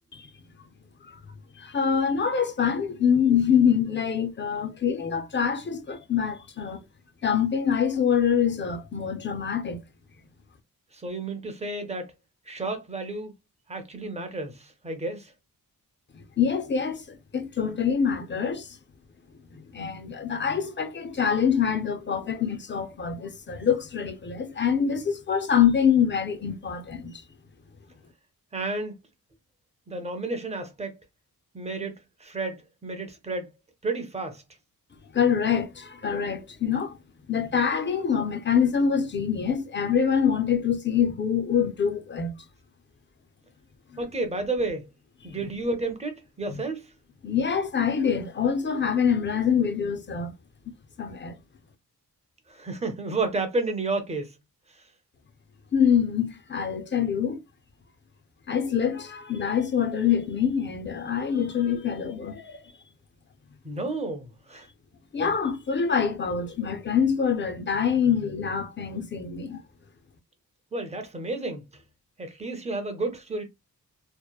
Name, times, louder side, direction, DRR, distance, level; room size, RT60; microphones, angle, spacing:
voice 1, 1.5-6.8 7.2-9.8 16.1-18.8 19.5-27.2 35.1-37.0 37.3-42.5 46.5-46.6 47.2-50.3 51.0-51.4 55.7-57.4 58.5-62.6 65.1-69.6, left 7 dB, 35° left, 0.4 m, -25 dB
voice 2, 10.9-12.1 12.5-13.3 13.7-15.3 28.5-29.0 29.9-31.0 31.5-31.9 32.2-33.5 33.8-34.4 44.0-44.9 45.2-46.9 52.5-54.3 54.7-54.8 63.6-64.7 70.7-71.7 72.2-73.4, right 2 dB, 20° right, 0.6 m, -31 dB
2.9 x 2.0 x 2.3 m
wide cardioid pair, 125°, 36 cm